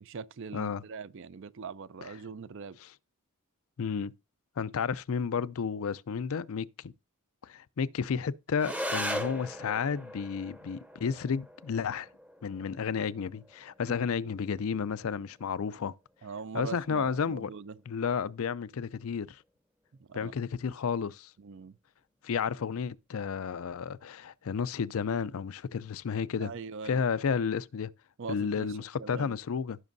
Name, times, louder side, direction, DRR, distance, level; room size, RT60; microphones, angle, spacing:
voice 1, 0.0-2.8 16.2-17.8 20.0-20.3 21.4-21.8 26.4-27.0 28.2-29.4, right 5 dB, 60° right, 0.5 m, -42 dB
voice 2, 0.5-0.8 2.8-2.9 3.8-4.1 4.6-6.9 7.4-12.1 12.4-15.9 16.5-17.5 17.9-19.4 20.1-21.3 22.2-26.5 26.8-27.9 28.3-29.8, left 6 dB, 70° left, 0.4 m, -32 dB
sound 1, 8.6-17.6, equal, 5° right, 0.7 m, -41 dB
16.0 x 6.0 x 2.6 m
head